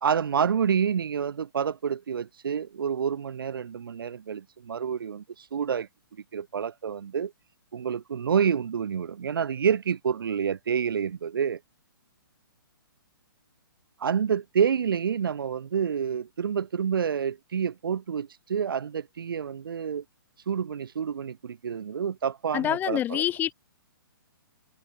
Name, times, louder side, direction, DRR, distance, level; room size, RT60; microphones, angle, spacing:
voice 1, 0.0-5.9 6.3-7.3 7.7-11.6 14.0-20.0 20.5-23.2, right 7 dB, 70° right, 2.1 m, -28 dB
voice 2, 22.5-23.5, left 12 dB, 15° left, 0.4 m, -26 dB
hypercardioid pair, 140°, 12 cm